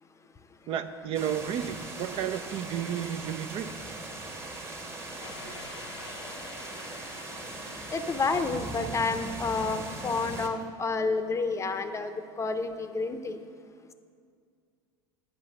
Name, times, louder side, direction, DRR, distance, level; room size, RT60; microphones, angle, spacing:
voice 1, 0.7-3.7 5.4-5.5, right 9 dB, 45° right, 10 dB, 0.5 m, -32 dB
sound 1, 1.1-10.5, right 2 dB, 20° right, 1.1 m, -40 dB
sound 2, 5.2-9.0, left 5 dB, 85° left, 0.7 m, -48 dB
voice 2, 7.9-13.4, left 4 dB, 20° left, 9 dB, 0.6 m, -30 dB
8.8 x 5.5 x 7.1 m, 2.2 s
hypercardioid pair, 75°, 13 cm